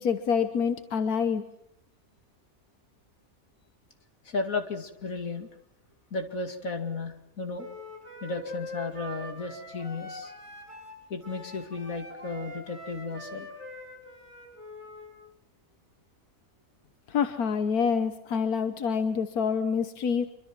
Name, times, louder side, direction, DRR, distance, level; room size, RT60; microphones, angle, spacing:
voice 1, 0.0-1.4 17.1-20.3, left 6 dB, 90° left, 9 dB, 1.6 m, -27 dB
voice 2, 4.2-5.5 6.1-7.7 8.2-10.3 11.1-13.5, left 3 dB, 65° left, 6 dB, 2.8 m, -34 dB
Wind instrument woodwind instrument, 7.6-15.1, left 1 dB, 20° right, 7.2 m, -43 dB
25.0 x 24.5 x 6.1 m, 0.74 s
omnidirectional pair, 1.5 m